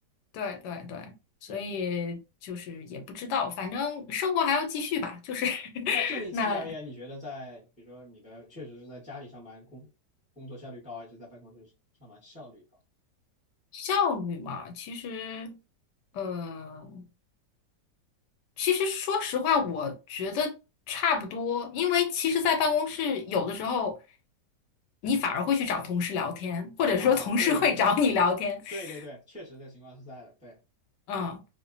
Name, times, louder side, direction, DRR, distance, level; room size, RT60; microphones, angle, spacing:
voice 1, 0.3-1.1 1.4-6.7 13.7-15.5 16.1-17.1 18.6-20.5 20.9-24.0 25.0-28.9 31.1-31.4, left 6 dB, 80° left, 1.2 m, -28 dB
voice 2, 5.9-9.9 10.4-11.7 12.0-12.6 27.0-27.8 28.7-30.6, left 1 dB, 5° right, 0.7 m, -42 dB
2.9 x 2.1 x 2.5 m
omnidirectional pair, 1.9 m